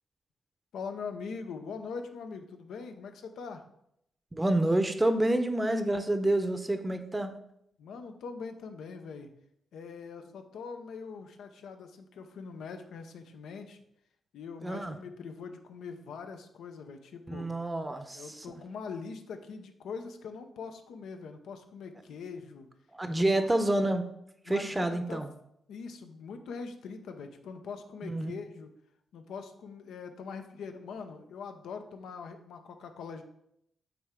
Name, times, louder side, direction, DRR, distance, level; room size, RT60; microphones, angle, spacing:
voice 1, 0.7-3.6 7.8-9.3 9.7-13.8 14.3-17.5 18.1-22.7 23.1-23.5 24.4-25.2 25.7-28.7 29.1-33.2, left 5 dB, 80° left, 6 dB, 0.7 m, -42 dB
voice 2, 4.3-7.3 14.6-15.0 17.3-18.3 22.9-24.0 24.5-25.3 28.0-28.3, right 1 dB, 15° right, 8 dB, 0.7 m, -28 dB
8.4 x 3.3 x 3.7 m, 0.75 s
cardioid pair, 65°, 0 cm